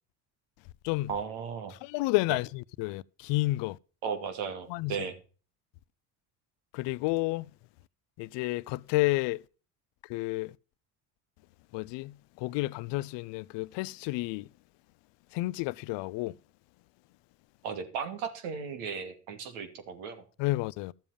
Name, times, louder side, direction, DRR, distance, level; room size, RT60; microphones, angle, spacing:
voice 1, 1.1-1.7 4.0-5.2 17.6-20.2, right 6 dB, 75° right, 2.7 m, -36 dB
voice 2, 1.8-3.8 4.7-5.0 6.7-7.4 8.2-9.4 10.1-10.5 11.7-14.5 15.3-16.4 20.4-20.9, left 20 dB, 60° left, 0.6 m, -30 dB
13.0 x 7.3 x 5.1 m
supercardioid pair, 80°, 48 cm